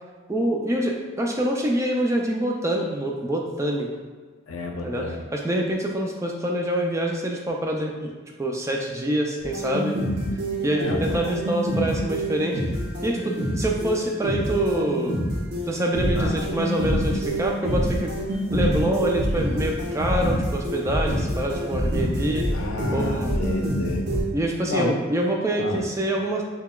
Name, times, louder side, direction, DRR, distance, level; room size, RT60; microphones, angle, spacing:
voice 1, 0.3-3.9 4.8-5.0 5.3-8.1 8.4-10.0 10.6-12.6 13.0-15.2 15.7-18.1 18.5-22.5 22.9-23.4 24.3-26.4, right 1 dB, 15° right, 0 dB, 0.3 m, -25 dB
voice 2, 4.5-5.3 10.6-11.3 16.1-16.4 22.5-24.1 24.7-25.0 25.6-25.8, left 2 dB, 90° left, 3 dB, 0.5 m, -30 dB
sound 1, 9.4-24.2, equal, 55° right, 0.7 m, -26 dB
5.6 x 2.2 x 2.2 m, 1.5 s
head